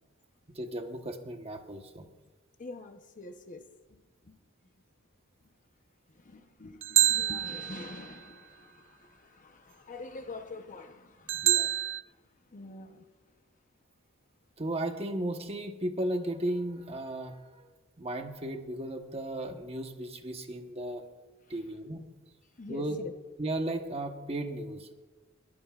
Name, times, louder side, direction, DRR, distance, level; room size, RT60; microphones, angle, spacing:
voice 1, 0.5-2.1 11.3-11.7 14.6-17.7 18.0-21.0 21.5-22.0 22.7-23.0 23.4-24.9, right 1 dB, 30° right, 5 dB, 1.1 m, -35 dB
voice 2, 2.6-4.4 5.4-5.5 6.1-11.8 12.1-12.2 12.5-13.1 21.5-21.6 22.6-23.1, left 3 dB, 35° left, 7 dB, 0.8 m, -46 dB
sound 1, 6.8-8.1 11.3-12.0, right 15 dB, 60° right, 0.4 m, -27 dB
21.5 x 15.0 x 2.4 m, 1.2 s
head